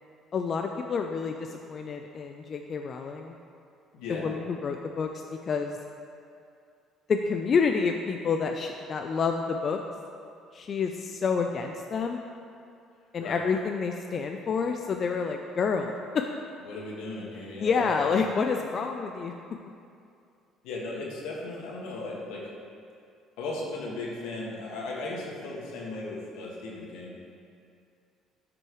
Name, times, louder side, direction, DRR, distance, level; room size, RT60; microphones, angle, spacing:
voice 1, 0.3-3.4 4.1-5.8 7.1-9.8 10.5-12.2 13.1-16.4 17.6-19.3, left 5 dB, 45° left, 4 dB, 0.4 m, -28 dB
voice 2, 3.9-4.3 13.2-13.4 16.6-17.9 20.6-22.5 23.4-27.2, left 2 dB, 85° left, -3 dB, 1.7 m, -36 dB
12.5 x 6.1 x 3.1 m, 2.4 s
cardioid pair, 100°, 0 cm